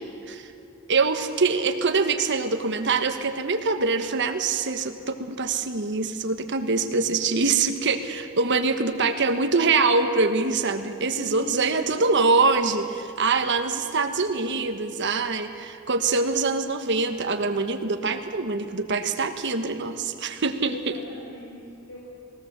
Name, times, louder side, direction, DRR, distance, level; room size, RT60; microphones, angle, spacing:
voice 1, 0.9-20.8, right 4 dB, 60° right, 7 dB, 1.3 m, -24 dB
voice 2, 11.1-12.0 20.7-22.0, right 1 dB, 80° left, -5 dB, 5.0 m, -39 dB
20.5 x 18.0 x 7.5 m, 2.7 s
head